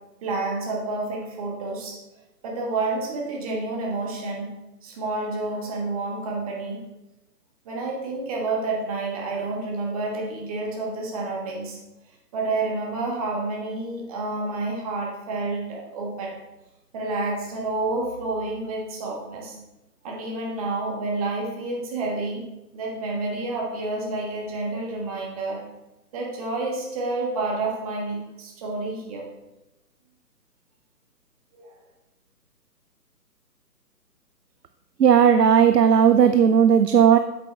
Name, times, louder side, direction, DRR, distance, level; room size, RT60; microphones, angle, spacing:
voice 1, 0.2-2.0 2.4-4.5 4.8-6.8 7.6-11.8 12.1-16.3 16.9-19.6 20.0-22.5 22.7-25.6 26.1-29.2 31.6-31.7, right 2 dB, 20° right, -1 dB, 1.4 m, -29 dB
voice 2, 35.0-37.2, right 7 dB, 75° right, 10 dB, 0.6 m, -16 dB
8.4 x 7.5 x 3.3 m, 0.97 s
figure-of-eight pair, 140°, 49 cm